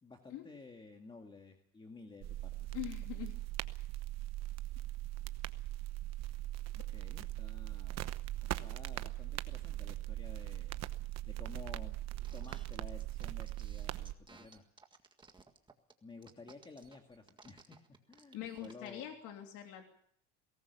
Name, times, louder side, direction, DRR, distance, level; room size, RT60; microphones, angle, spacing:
voice 1, 0.0-2.8 6.7-8.2 8.4-10.8 11.3-12.0 12.3-14.6 16.0-19.1, left 3 dB, 15° left, 3 dB, 2.1 m, -53 dB
sound 1, 2.2-14.1, right 16 dB, 50° right, 1.0 m, -40 dB
voice 2, 2.7-3.4 18.3-19.9, left 12 dB, 65° left, 3 dB, 3.2 m, -43 dB
sound 2, 12.2-18.9, right 3 dB, 15° right, 1.8 m, -59 dB
22.0 x 18.5 x 6.9 m, 0.65 s
cardioid pair, 135°, 33 cm